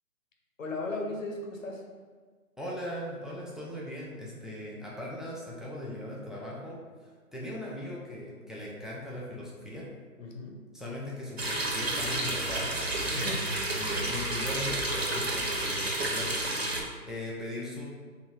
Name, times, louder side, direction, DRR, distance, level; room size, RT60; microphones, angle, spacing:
voice 1, 0.6-1.8 10.2-10.6 13.1-13.5 13.7-13.9, left 2 dB, 55° left, 1 dB, 0.8 m, -36 dB
voice 2, 2.6-9.9 10.7-13.3 13.8-16.3 16.6-17.8, left 1 dB, ahead, -6 dB, 0.4 m, -39 dB
sound 1, 11.4-16.8, right 1 dB, 45° right, 0.6 m, -30 dB
3.1 x 2.7 x 4.4 m, 1.5 s
figure-of-eight pair, 160°, 46 cm